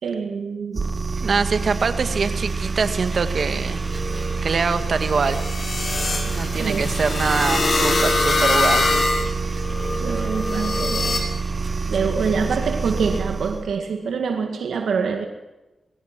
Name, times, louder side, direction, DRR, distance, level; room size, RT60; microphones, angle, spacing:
voice 1, 0.0-0.9 6.5-6.9 10.0-11.2 11.9-15.2, right 5 dB, 85° right, 5 dB, 1.9 m, -25 dB
sound 1, 0.7-13.7, right 4 dB, 45° right, 1.0 m, -27 dB
voice 2, 1.2-3.8 4.4-5.4 6.2-8.9, right 5 dB, 60° right, 9 dB, 1.8 m, -24 dB
sound 2, 3.7-11.2, left 2 dB, 50° left, 4.9 m, -24 dB
21.5 x 17.0 x 7.6 m, 1.0 s
cardioid pair, 85°, 0 cm